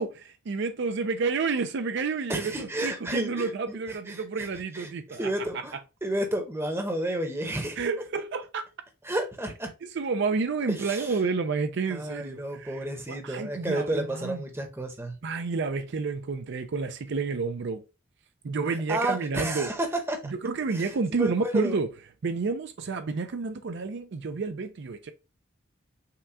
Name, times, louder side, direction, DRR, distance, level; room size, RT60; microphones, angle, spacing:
voice 1, 0.0-5.2 7.8-8.6 9.9-14.4 15.2-17.8 18.4-19.7 20.2-21.9 22.2-25.1, right 4 dB, 60° right, 0.4 m, -30 dB
voice 2, 2.3-3.8 4.1-4.5 4.7-7.8 9.0-9.7 10.7-11.2 11.9-15.2 18.7-20.3 20.7-21.8, right 1 dB, 10° right, 0.8 m, -31 dB
5.7 x 2.3 x 3.5 m
head